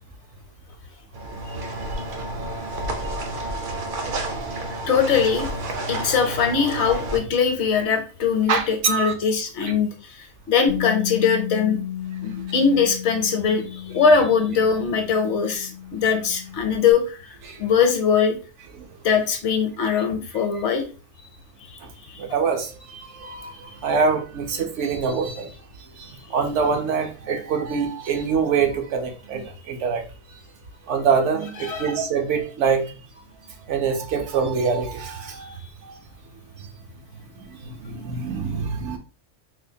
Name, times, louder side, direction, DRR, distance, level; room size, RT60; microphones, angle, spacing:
sound 1, 1.1-7.2, right 1 dB, 55° right, 0.6 m, -30 dB
voice 1, 4.9-5.5 5.9-11.8 12.2-18.4 19.0-20.8 21.7-21.8 22.1-22.2 31.6-32.0, left 6 dB, 70° left, 6 dB, 0.9 m, -21 dB
voice 2, 8.5-9.1 12.3-12.4 17.5-17.6 18.8-18.9 19.9-20.0 21.8-21.9 22.2-25.5 26.0-30.0 30.9-33.0 33.7-35.6 35.8-36.0 37.4-39.0, right 5 dB, 70° right, 4 dB, 1.0 m, -25 dB
Bass guitar, 10.7-16.9, left 11 dB, 40° left, 0.4 m, -34 dB
4.2 x 2.2 x 2.6 m, 0.35 s
omnidirectional pair, 1.3 m